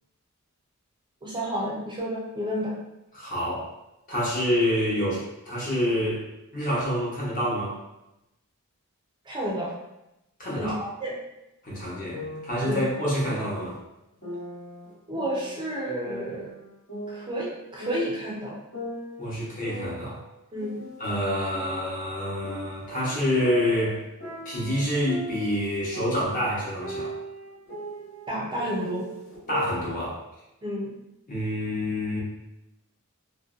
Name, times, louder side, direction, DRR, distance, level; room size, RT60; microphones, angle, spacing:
voice 1, 1.2-2.8 9.3-9.7 10.5-11.1 12.6-12.8 15.1-16.5 17.1-18.6 20.5-20.9 28.3-29.1 30.6-30.9, equal, 20° right, -4 dB, 0.4 m, -31 dB
voice 2, 3.1-3.7 4.1-6.2 6.5-7.8 10.4-10.7 11.6-13.8 19.2-20.2 21.0-24.0 24.4-27.1 29.5-30.2 31.3-32.2, equal, 40° left, -6 dB, 0.8 m, -27 dB
sound 1, 12.1-13.8 14.2-15.8 16.0-18.3 18.7-21.2 21.5-25.6 25.9-29.9, equal, 60° left, 1.0 m, -39 dB
2.5 x 2.1 x 2.4 m, 0.91 s
head